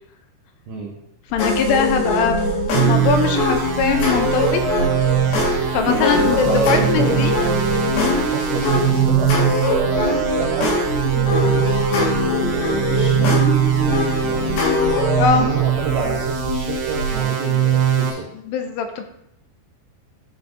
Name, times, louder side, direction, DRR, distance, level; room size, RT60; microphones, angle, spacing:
voice 1, 1.3-4.6 5.7-7.3 15.2-15.5 18.5-19.0, left 6 dB, 80° left, 6 dB, 2.5 m, -21 dB
sound 1, 1.3-17.2, right 7 dB, 50° right, 3.1 m, -30 dB
sound 2, 1.4-15.3, left 2 dB, 65° left, 3.3 m, -22 dB
sound 3, 2.7-18.1, right 8 dB, 70° right, 2.4 m, -22 dB
voice 2, 5.8-7.4 8.0-9.7 10.3-10.7 11.2-12.1 12.4-14.6 15.3-18.3, right 4 dB, 85° right, 0 dB, 1.9 m, -30 dB
12.0 x 5.9 x 2.6 m, 0.78 s
omnidirectional pair, 5.1 m